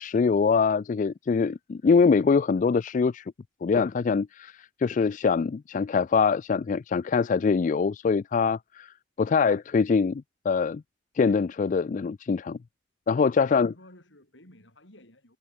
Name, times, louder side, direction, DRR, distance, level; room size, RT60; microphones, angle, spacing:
voice 1, 0.0-3.2 3.6-10.8 11.1-12.6 13.1-13.7, left 5 dB, 40° left, 0.3 m, -24 dB
voice 2, 13.1-15.4, left 1 dB, 70° left, 7.0 m, -54 dB
head